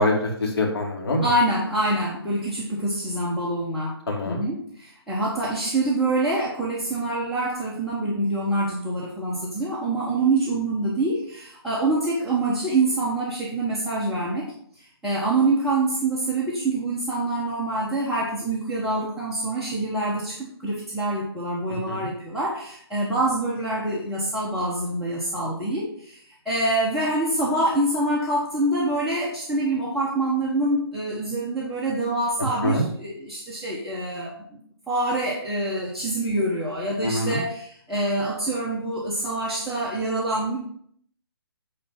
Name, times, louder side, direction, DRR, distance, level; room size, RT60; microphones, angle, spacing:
voice 1, 0.0-1.2 4.1-4.4 21.9-22.1 32.6-32.8 37.0-37.4, left 1 dB, 65° left, 0 dB, 3.0 m, -24 dB
voice 2, 1.2-3.9 4.2-14.5 15.0-26.2 26.4-34.3 34.9-40.6, right 2 dB, ahead, -9 dB, 1.2 m, -25 dB
9.5 x 4.2 x 5.8 m, 0.63 s
hypercardioid pair, 155°, 14 cm